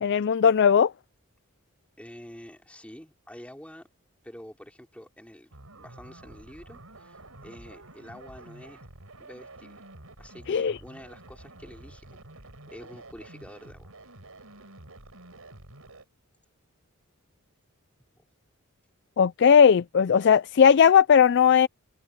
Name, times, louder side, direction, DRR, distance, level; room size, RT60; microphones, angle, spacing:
voice 1, 0.0-0.9 10.5-10.7 19.2-21.7, left 7 dB, 55° left, 0.4 m, -18 dB
voice 2, 2.0-3.9 4.2-8.8 9.2-9.9 10.2-12.2 12.7-13.9, equal, 5° left, 3.6 m, -47 dB
sound 1, 5.5-16.0, right 2 dB, 80° right, 4.9 m, -49 dB
head